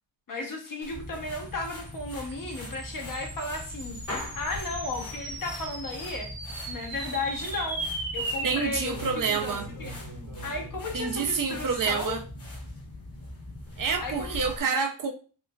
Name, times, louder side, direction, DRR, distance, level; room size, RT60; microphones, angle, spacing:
voice 1, 0.3-6.3 6.7-7.9 8.1-9.0 9.3-9.9 10.4-12.2 14.0-14.4, left 2 dB, 50° left, 0.9 m, -34 dB
sound 1, 0.8-14.6, left 2 dB, 35° left, 1.1 m, -45 dB
sound 2, 0.9-14.5, left 1 dB, 85° left, 1.2 m, -43 dB
sound 3, 1.5-12.1, right 2 dB, 85° right, 1.4 m, -39 dB
voice 2, 8.4-9.7 10.9-12.2 13.8-15.1, right 5 dB, 50° right, 0.5 m, -28 dB
4.5 x 2.3 x 2.2 m
wide cardioid pair, 130°, 43 cm